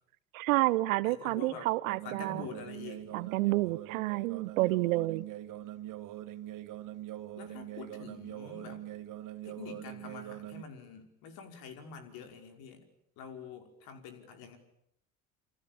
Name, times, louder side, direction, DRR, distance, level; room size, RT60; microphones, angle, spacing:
voice 1, 0.3-2.5 3.1-5.2, right 19 dB, 70° right, 19 dB, 1.1 m, -29 dB
voice 2, 1.0-1.7 2.0-3.2 7.4-8.8 9.4-12.8 13.2-14.6, left 6 dB, 60° left, 6 dB, 5.2 m, -46 dB
sound 1, 1.9-10.6, right 13 dB, 45° right, 1.7 m, -43 dB
28.0 x 26.0 x 7.3 m, 0.76 s
hypercardioid pair, 70°, 42 cm